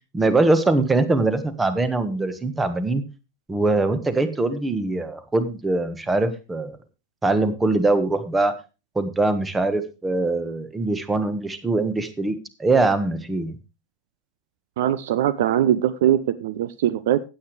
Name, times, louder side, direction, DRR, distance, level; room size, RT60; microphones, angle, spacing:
voice 1, 0.1-3.0 3.5-6.8 7.2-8.5 8.9-13.6, right 2 dB, 10° right, 12 dB, 1.4 m, -22 dB
voice 2, 14.8-17.2, right 11 dB, 55° right, 15 dB, 0.6 m, -21 dB
15.5 x 8.7 x 3.3 m, 0.30 s
figure-of-eight pair, 90°, 0 cm